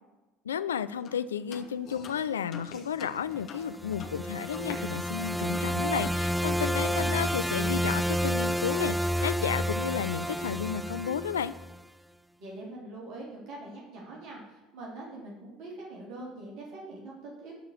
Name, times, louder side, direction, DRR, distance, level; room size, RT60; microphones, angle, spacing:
voice 1, 0.5-11.5, left 8 dB, 80° left, 14 dB, 0.4 m, -32 dB
sound 1, 1.0-1.2 1.5-4.7 5.0-5.1 5.5-6.6 6.9-7.1, left 6 dB, 45° left, 1.2 m, -47 dB
sound 2, 1.4-1.7 2.0-3.6 3.9-4.2 4.6-6.4, left 5 dB, 60° left, 1.7 m, -48 dB
sound 3, 3.6-11.8, equal, 5° right, 0.4 m, -30 dB
voice 2, 6.8-7.3 12.4-17.5, right 2 dB, 55° right, -3 dB, 3.2 m, -43 dB
12.0 x 4.8 x 7.2 m, 1.1 s
figure-of-eight pair, 65°, 0 cm